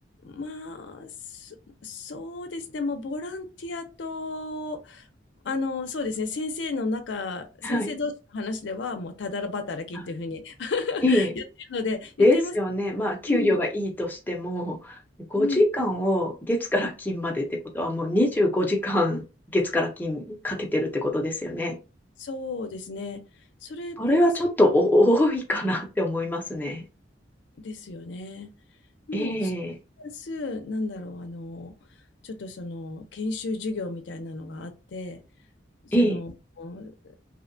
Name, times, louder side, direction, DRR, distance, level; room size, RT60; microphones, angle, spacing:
voice 1, 0.2-1.6 1.8-5.1 5.4-11.4 11.7-12.5 13.3-13.6 15.4-15.6 22.2-23.2 23.6-24.3 27.6-28.5 29.1-29.5 30.0-31.7 32.2-35.2 35.8-36.3 36.6-36.9, left 3 dB, 75° left, 0.5 m, -33 dB
voice 2, 12.2-15.0 15.3-17.5 17.7-19.2 19.5-21.7 24.0-26.8 29.1-29.7 35.9-36.2, left 1 dB, 10° left, 0.5 m, -24 dB
2.7 x 2.1 x 2.5 m
head